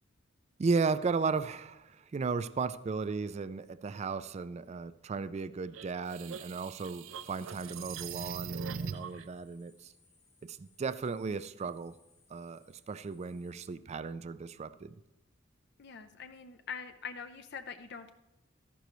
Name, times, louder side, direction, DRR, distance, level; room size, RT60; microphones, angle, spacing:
voice 1, 0.6-9.9 10.4-12.0 12.3-15.0, right 4 dB, 35° right, 14 dB, 0.3 m, -35 dB
sound 1, 5.7-9.2, right 6 dB, 90° right, 0.5 m, -41 dB
sound 2, 7.2-13.7, left 4 dB, 80° left, 4.9 m, -68 dB
voice 2, 15.8-18.1, left 6 dB, 60° left, 8 dB, 0.6 m, -43 dB
13.5 x 11.5 x 3.1 m, 0.97 s
head